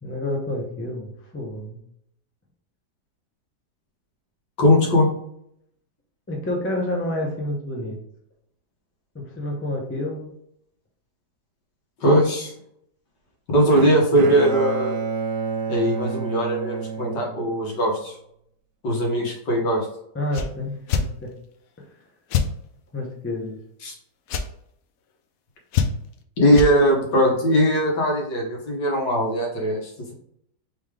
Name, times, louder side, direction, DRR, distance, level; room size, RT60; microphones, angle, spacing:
voice 1, 0.0-1.8 6.3-8.0 9.1-10.3 20.1-21.3 21.8-21.9 22.9-23.6, left 1 dB, 20° left, 0 dB, 0.4 m, -29 dB
voice 2, 4.6-5.1 12.0-12.5 13.5-15.0 15.7-18.1 18.8-19.9 23.8-23.9 26.4-30.1, equal, 90° left, -1 dB, 1.8 m, -20 dB
Bowed string instrument, 13.7-17.9, right 5 dB, 90° right, 1.2 m, -29 dB
sound 1, 20.3-20.5 20.9-21.1 22.3-22.5 24.3-24.5 25.7-26.1 26.5-26.7, left 6 dB, 70° left, 0.9 m, -22 dB
3.9 x 3.3 x 3.6 m, 0.73 s
omnidirectional pair, 1.8 m